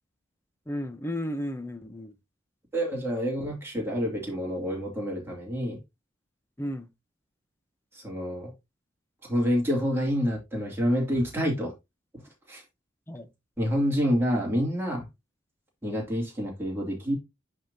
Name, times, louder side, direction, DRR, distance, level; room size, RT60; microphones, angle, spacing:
voice 1, 0.7-2.2 6.6-6.9 13.1-13.3, equal, 15° left, 0.7 m, -33 dB
voice 2, 2.7-5.8 7.9-8.5 9.2-11.7 12.1-12.2 12.5-12.6 13.6-15.1 15.8-17.1, equal, 15° right, 2.4 m, -28 dB
10.5 x 3.7 x 2.7 m
head